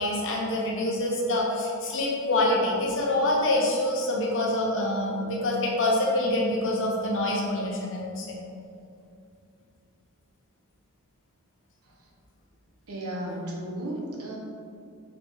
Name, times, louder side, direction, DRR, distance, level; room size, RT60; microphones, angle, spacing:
voice 1, 0.0-8.4, left 1 dB, 60° left, -2 dB, 1.3 m, -26 dB
voice 2, 12.9-14.4, right 1 dB, 85° right, -2 dB, 1.3 m, -34 dB
6.1 x 3.8 x 4.8 m, 2.4 s
head